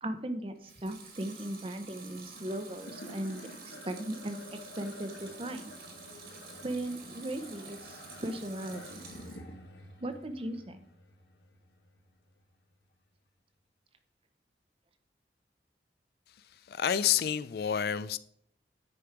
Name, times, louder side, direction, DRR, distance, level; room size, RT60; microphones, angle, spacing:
voice 1, 0.0-5.7 6.6-9.0 10.0-10.8, right 1 dB, 30° right, 0.7 m, -38 dB
Water tap faucet / Sink (filling or washing) / Liquid, 0.6-9.5 9.9-10.6, right 4 dB, 60° right, 2.0 m, -50 dB
sound 1, 2.4-12.9, left 1 dB, 80° left, 1.6 m, -50 dB
voice 2, 16.7-18.2, left 9 dB, 60° left, 0.3 m, -29 dB
10.0 x 5.1 x 4.7 m
head